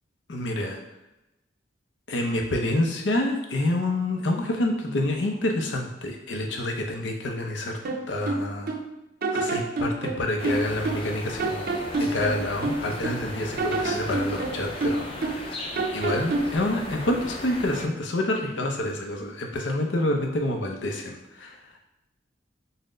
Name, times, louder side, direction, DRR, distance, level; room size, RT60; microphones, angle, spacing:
voice 1, 0.3-0.8 2.1-7.8 8.1-8.7 9.3-11.7 12.0-21.6, left 1 dB, 80° left, 3 dB, 0.6 m, -28 dB
sound 1, 7.8-8.9 9.2-11.1 11.4-13.2 13.6-15.5 15.8-16.6, right 2 dB, 55° right, 0.4 m, -28 dB
sound 2, 10.4-17.8, left 1 dB, 30° left, 0.4 m, -37 dB
4.1 x 2.1 x 3.7 m, 0.93 s
head